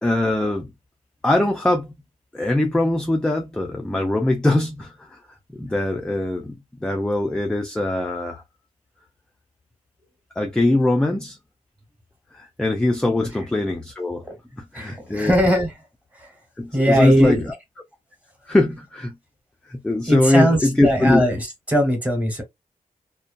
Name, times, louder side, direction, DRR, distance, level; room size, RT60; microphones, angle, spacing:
voice 1, 0.0-0.7 1.2-1.9 2.3-5.2 5.5-6.5 6.8-8.4 10.4-11.4 12.3-14.2 14.6-15.3 16.6-17.5 18.5-19.2 19.7-21.2, left 1 dB, 5° left, 0.3 m, -22 dB
voice 2, 14.7-15.7 16.1-16.3 16.7-17.4 20.1-22.4, equal, 10° right, 1.0 m, -20 dB
2.6 x 2.1 x 2.4 m
wide cardioid pair, 175°, 14 cm